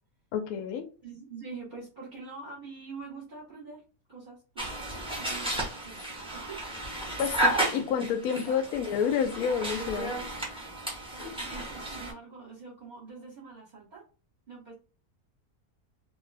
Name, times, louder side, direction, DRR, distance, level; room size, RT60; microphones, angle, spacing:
voice 1, 0.3-0.9 7.2-10.2, left 7 dB, 70° left, 0.9 m, -29 dB
voice 2, 1.0-3.8 4.1-4.8 5.1-8.9 11.1-14.0 14.5-14.7, right 4 dB, 35° right, 0.9 m, -45 dB
sound 1, 4.6-12.1, right 1 dB, 5° right, 0.5 m, -33 dB
2.6 x 2.2 x 3.3 m
omnidirectional pair, 1.7 m